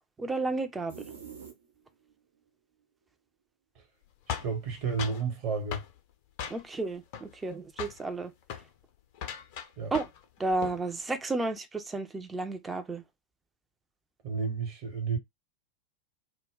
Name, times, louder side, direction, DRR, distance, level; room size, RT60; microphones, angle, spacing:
voice 1, 0.2-0.9 6.5-8.3 9.9-10.0 10.4-13.0, right 3 dB, 15° right, 0.5 m, -32 dB
sound 1, 0.9-2.1, right 7 dB, 65° right, 0.7 m, -46 dB
sound 2, 4.3-5.3 5.7-5.9 6.4-6.8 7.1-7.5 7.8-8.0 8.4-8.7 9.1-10.2 10.5-10.8, left 8 dB, 45° left, 0.5 m, -38 dB
voice 2, 4.3-5.8 9.8-9.9 14.2-15.2, right 5 dB, 40° right, 1.0 m, -31 dB
2.1 x 2.1 x 3.6 m
figure-of-eight pair, 90°, 0 cm